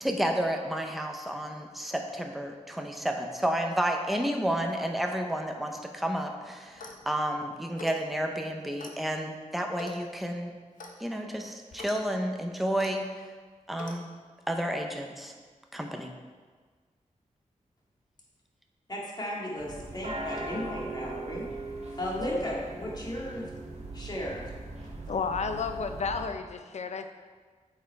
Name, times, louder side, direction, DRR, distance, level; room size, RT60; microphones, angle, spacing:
voice 1, 0.0-10.5 11.0-13.1 13.7-14.1 14.5-15.3 15.7-16.1, right 1 dB, ahead, 3 dB, 0.7 m, -31 dB
Clock, 6.7-7.1 7.7-8.0 8.8-9.0 9.8-10.0 10.8-11.0 11.7-12.0 12.8-12.9 13.8-14.0, left 3 dB, 85° left, 0.9 m, -44 dB
voice 2, 18.9-21.5 22.0-23.5 23.9-24.5, left 1 dB, 30° left, -4 dB, 2.0 m, -35 dB
sound 1, 19.6-26.3, right 2 dB, 55° right, 1.2 m, -40 dB
voice 3, 25.1-27.1, left 5 dB, 60° left, 8 dB, 0.6 m, -32 dB
7.8 x 5.4 x 4.6 m, 1.5 s
wide cardioid pair, 115°, 13 cm